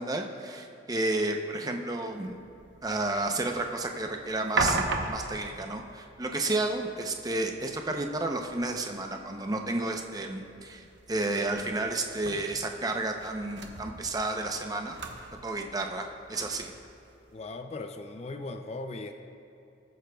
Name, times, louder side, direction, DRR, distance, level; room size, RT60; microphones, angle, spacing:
voice 1, 0.0-2.4 2.8-15.0 15.4-16.7, right 2 dB, 20° right, 3 dB, 0.6 m, -31 dB
sound 1, 2.1-17.4, right 3 dB, 65° right, 0.9 m, -39 dB
voice 2, 17.3-19.1, left 2 dB, 30° left, 6 dB, 0.4 m, -38 dB
19.0 x 10.0 x 2.3 m, 2.6 s
head